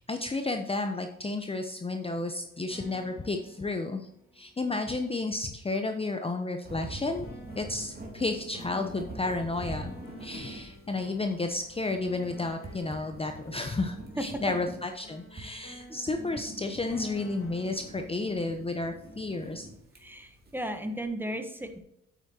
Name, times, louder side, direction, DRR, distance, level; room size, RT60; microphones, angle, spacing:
voice 1, 0.0-4.1 4.3-7.3 7.6-9.9 10.2-19.7, left 2 dB, 20° left, 5 dB, 0.8 m, -32 dB
sound 1, 2.0-4.9 7.2-18.3, equal, 75° left, 3.3 m, -51 dB
sound 2, 6.6-20.9, right 2 dB, 30° right, 2.8 m, -45 dB
voice 2, 20.0-21.8, equal, 5° right, 7 dB, 1.1 m, -35 dB
8.8 x 8.1 x 2.8 m, 0.79 s
cardioid pair, 90°, 30 cm